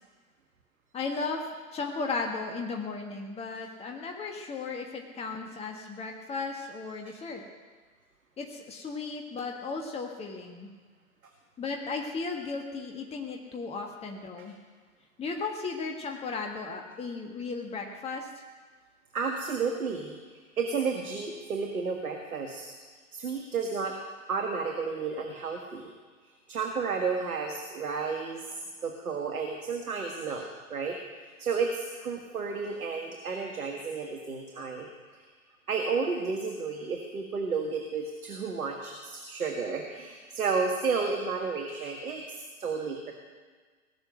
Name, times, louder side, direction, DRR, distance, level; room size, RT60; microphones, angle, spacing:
voice 1, 0.9-1.4 1.7-7.4 8.4-10.7 11.6-14.5 15.2-18.3, left 4 dB, 15° left, 2 dB, 1.5 m, -35 dB
voice 2, 19.1-22.6 23.1-23.9 24.3-25.9 26.2-31.0 31.4-35.3 35.7-43.1, right 5 dB, 80° right, 3 dB, 1.8 m, -32 dB
19.0 x 7.0 x 9.2 m, 1.4 s
figure-of-eight pair, 110°, 43 cm